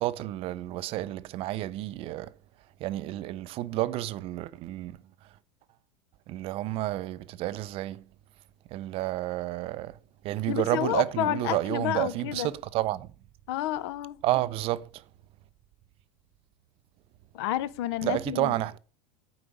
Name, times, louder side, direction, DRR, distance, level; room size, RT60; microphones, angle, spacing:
voice 1, 0.0-2.3 2.8-5.0 6.3-8.0 8.7-10.0 10.2-13.1 14.2-15.0 18.0-18.8, right 15 dB, 40° right, 0.4 m, -30 dB
voice 2, 10.5-12.5 13.5-14.2 17.3-18.5, left 13 dB, 70° left, 0.6 m, -30 dB
7.9 x 4.8 x 5.2 m
supercardioid pair, 130°, 14 cm